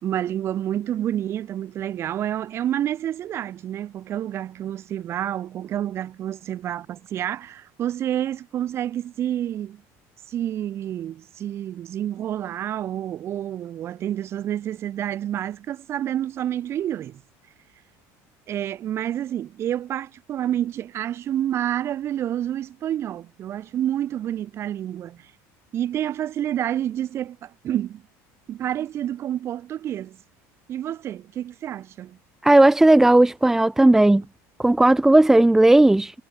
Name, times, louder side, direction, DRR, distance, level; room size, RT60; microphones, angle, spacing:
voice 1, 0.0-9.8 10.3-17.2 18.5-25.3 25.7-28.0 28.5-30.2 30.7-32.2, right 11 dB, 35° right, 3.4 m, -28 dB
voice 2, 32.4-34.2 34.6-36.1, right 2 dB, 5° right, 1.7 m, -15 dB
cardioid pair, 155°, 7 cm